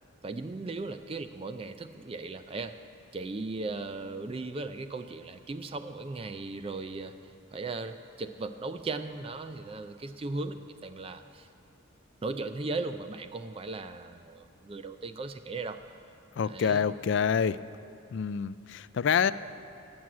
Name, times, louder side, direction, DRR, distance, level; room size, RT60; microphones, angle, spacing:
voice 1, 0.2-2.8 3.1-11.5 12.2-15.8 16.4-16.9, right 3 dB, 25° right, 9 dB, 0.3 m, -37 dB
voice 2, 16.4-17.6 18.1-19.3, left 7 dB, 55° left, 16 dB, 0.3 m, -27 dB
15.5 x 6.2 x 9.4 m, 2.7 s
head